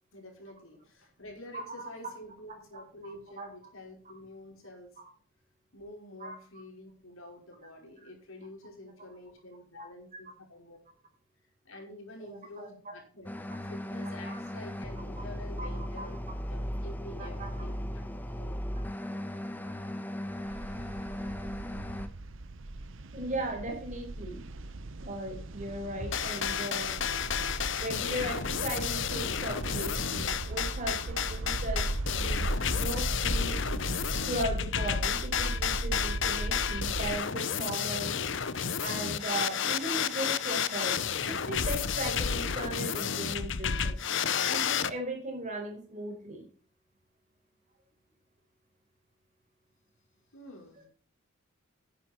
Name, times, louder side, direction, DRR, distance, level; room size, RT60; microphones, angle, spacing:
voice 1, 0.1-5.0 5.7-10.8 11.6-18.1 18.4-18.9 50.3-50.9, left 1 dB, 75° left, 1 dB, 5.1 m, -48 dB
voice 2, 1.5-1.9 2.5-3.1 3.4-3.5 6.2-6.4 12.2-12.9 14.3-14.4 15.2-15.3 15.6-16.1 17.2-17.5 18.7-18.8 23.1-24.4 25.0-27.0 27.8-31.9 32.1-33.8 34.3-38.4 38.8-41.0 41.3-44.0 44.5-46.5, right 1 dB, 35° right, 2 dB, 4.5 m, -37 dB
sound 1, 13.3-22.1, equal, 10° left, 1.0 m, -37 dB
sound 2, 20.5-37.1, right 2 dB, 65° right, 0.8 m, -37 dB
sound 3, 26.1-44.9, left 7 dB, 60° left, 0.8 m, -31 dB
10.5 x 10.5 x 4.4 m, 0.43 s
head